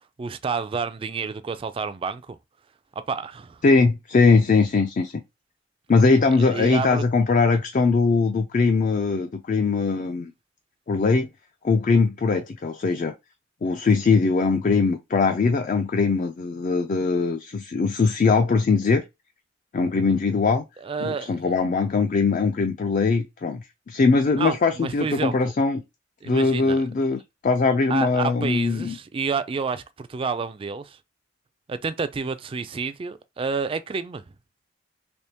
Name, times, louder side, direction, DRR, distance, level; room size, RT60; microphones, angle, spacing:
voice 1, 0.2-2.4 3.1-3.6 6.3-7.0 20.1-20.2 20.8-21.4 24.4-25.5 26.2-26.8 27.9-31.0 31.7-34.2, right 5 dB, 30° right, 0.3 m, -29 dB
voice 2, 3.6-5.2 5.9-10.3 10.9-11.3 11.6-13.1 13.6-19.0 19.7-20.6 21.0-25.8 26.3-29.0, left 4 dB, 40° left, 0.4 m, -21 dB
3.4 x 2.9 x 2.8 m
head